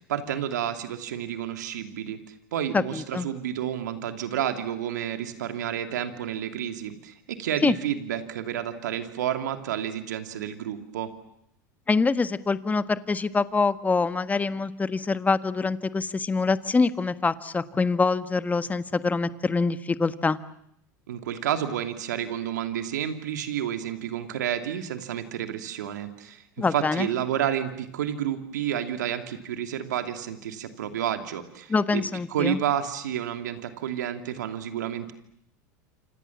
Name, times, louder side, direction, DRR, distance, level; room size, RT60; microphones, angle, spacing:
voice 1, 0.0-11.1 21.1-26.4 26.7-32.0 32.3-35.1, right 10 dB, 80° right, 7 dB, 2.8 m, -30 dB
voice 2, 2.7-3.3 7.6-7.8 11.9-20.4 26.6-27.1 31.7-32.6, left 4 dB, 15° left, 12 dB, 1.5 m, -25 dB
28.0 x 27.0 x 7.4 m, 0.73 s
hypercardioid pair, 90°, 9 cm